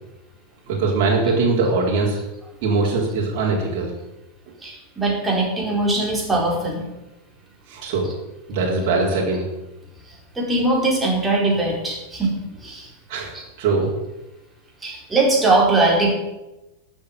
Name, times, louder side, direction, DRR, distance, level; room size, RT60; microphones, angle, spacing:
voice 1, 0.7-2.2 2.6-3.9 7.7-8.1 8.5-9.4 13.1-13.3 13.6-14.0, right 3 dB, 45° right, -3 dB, 3.8 m, -21 dB
voice 2, 4.6-6.9 8.0-8.1 10.1-12.9 13.3-13.4 14.8-16.1, right 2 dB, 15° right, -2 dB, 4.6 m, -21 dB
13.0 x 7.7 x 8.7 m, 1.0 s
figure-of-eight pair, 90°, 0 cm